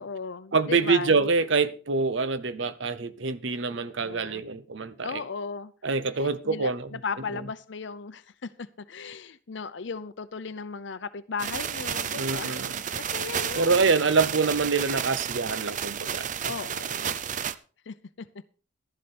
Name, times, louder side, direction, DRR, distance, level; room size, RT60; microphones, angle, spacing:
voice 1, 0.0-1.2 4.0-4.4 5.0-5.7 6.2-13.7 16.4-17.5 17.9-18.3, left 5 dB, 65° left, 0.6 m, -36 dB
voice 2, 0.5-5.2 5.8-6.9 12.2-12.8 13.6-16.3, right 4 dB, 65° right, 0.8 m, -25 dB
sound 1, 11.4-17.5, right 8 dB, 40° right, 0.5 m, -32 dB
12.5 x 11.0 x 4.3 m
head